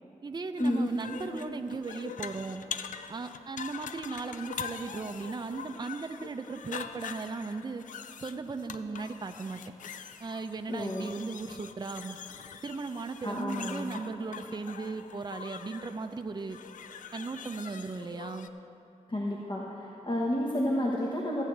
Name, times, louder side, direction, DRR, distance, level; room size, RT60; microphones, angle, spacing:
voice 1, 0.2-2.6 3.1-7.8 8.2-9.6 10.2-12.2 12.6-16.6 17.1-18.5, right 4 dB, 35° right, 7 dB, 0.5 m, -37 dB
sound 1, 0.6-18.5, left 7 dB, 90° left, 0.4 m, -44 dB
voice 2, 10.7-11.1 13.2-14.0 19.1-21.4, left 1 dB, 40° left, -2 dB, 1.2 m, -30 dB
15.0 x 9.0 x 3.3 m, 3.0 s
cardioid pair, 45°, 13 cm